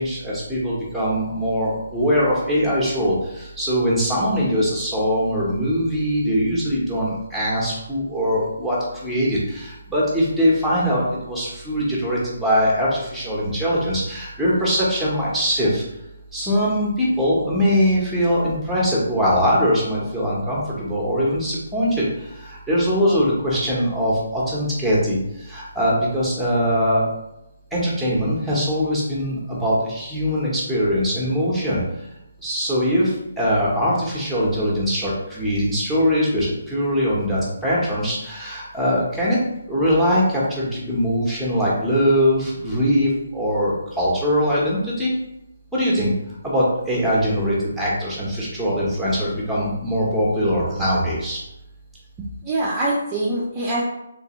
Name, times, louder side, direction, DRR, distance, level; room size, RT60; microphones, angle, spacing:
voice 1, 0.0-15.8 16.3-27.1 27.7-31.8 32.4-39.4 39.7-45.1 45.7-46.1 46.4-51.4, equal, ahead, -6 dB, 1.0 m, -22 dB
voice 2, 52.2-53.8, right 1 dB, 20° right, -7 dB, 0.6 m, -24 dB
3.2 x 3.1 x 3.0 m, 0.89 s
hypercardioid pair, 155°, 0 cm